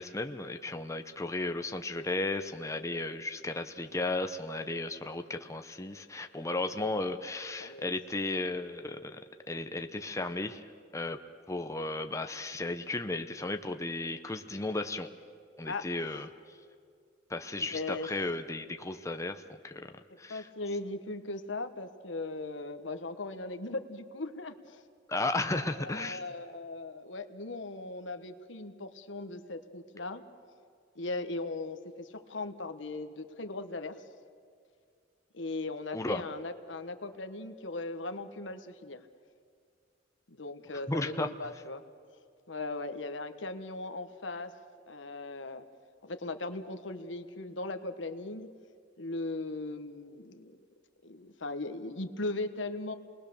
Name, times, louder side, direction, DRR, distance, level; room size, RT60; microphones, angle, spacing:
voice 1, 0.0-9.2 9.5-10.7 10.9-11.2 11.5-15.1 15.6-16.6 17.3-20.5 25.1-26.2 35.9-36.2 40.9-41.3, left 2 dB, 15° left, 7 dB, 0.8 m, -34 dB
voice 2, 17.6-18.1 20.3-24.8 25.8-30.2 30.9-34.0 35.3-39.0 40.3-41.8 42.5-44.5 44.9-45.6 46.0-48.5 49.0-50.6 51.0-52.9, left 2 dB, 80° left, 8 dB, 1.3 m, -38 dB
28.5 x 20.5 x 6.9 m, 2.2 s
head